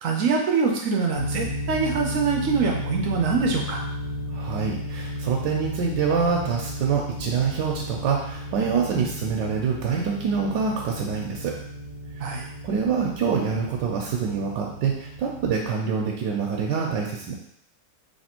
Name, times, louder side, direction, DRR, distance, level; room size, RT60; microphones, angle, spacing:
voice 1, 0.0-3.8 12.2-12.5, right 5 dB, 65° right, 0 dB, 0.8 m, -24 dB
sound 1, 1.1-15.6, left 1 dB, 70° left, 1.3 m, -34 dB
voice 2, 4.3-11.5 12.2-12.3 12.6-17.3, right 6 dB, 80° right, -1 dB, 1.3 m, -26 dB
3.3 x 3.0 x 4.3 m, 0.68 s
omnidirectional pair, 2.0 m